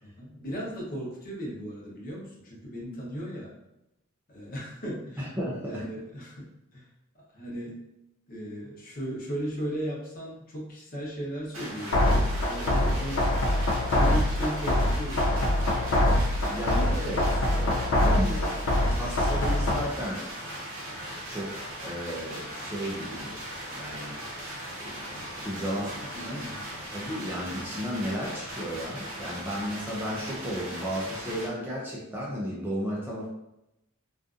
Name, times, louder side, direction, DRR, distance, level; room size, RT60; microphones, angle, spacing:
voice 1, 0.0-3.5 4.3-5.3 5.6-6.5 6.7-6.9 7.3-7.8 8.3-15.5 25.7-25.9 26.2-26.6, equal, 45° left, -4 dB, 0.8 m, -36 dB
voice 2, 5.2-5.8 16.4-18.5 18.9-20.3 21.3-21.5 21.8-23.3 23.7-24.2 24.8-25.0 25.4-26.4 26.9-33.3, equal, 10° right, -5 dB, 0.4 m, -34 dB
sound 1, 11.5-31.5, right 1 dB, 65° right, 0.7 m, -39 dB
sound 2, 11.9-19.9, left 1 dB, 65° left, 0.4 m, -24 dB
2.5 x 2.4 x 2.4 m, 0.87 s
head